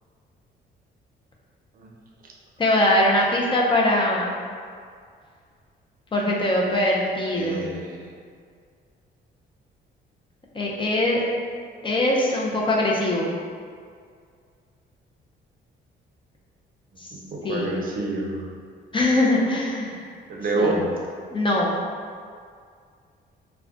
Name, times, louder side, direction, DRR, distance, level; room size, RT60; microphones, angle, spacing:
voice 1, 2.6-4.4 6.1-7.7 10.5-11.2 11.8-13.3 17.0-17.1 17.4-17.7 18.9-20.0 20.6-20.8 21.3-21.8, left 1 dB, 25° left, -3 dB, 0.5 m, -22 dB
voice 2, 7.3-8.1 17.1-18.5 20.3-20.9, right 2 dB, 45° right, -1 dB, 0.6 m, -27 dB
2.3 x 2.2 x 3.7 m, 2.1 s
cardioid pair, 90°, 20 cm